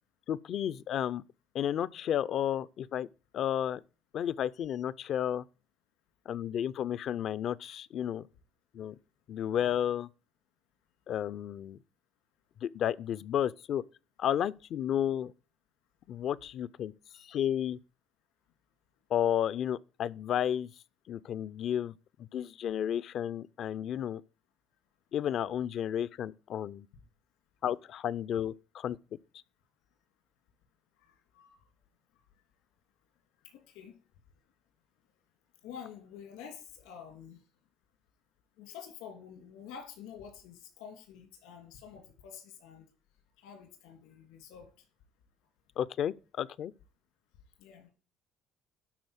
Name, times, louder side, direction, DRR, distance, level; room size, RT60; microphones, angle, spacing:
voice 1, 0.3-1.2 1.5-3.1 3.3-3.8 4.1-5.4 6.3-8.2 8.7-8.9 9.3-10.1 11.1-11.8 12.6-13.8 14.2-15.3 16.1-16.9 17.2-17.8 19.1-20.7 21.1-21.9 22.3-24.2 25.1-26.9 27.6-29.0 45.8-46.7, left 10 dB, 60° left, 0.5 m, -32 dB
voice 2, 31.0-31.6 33.5-33.9 35.6-37.4 38.6-42.9 43.4-44.7 47.6-47.9, left 8 dB, 85° left, 2.6 m, -48 dB
12.0 x 4.2 x 8.1 m
supercardioid pair, 85°, 0 cm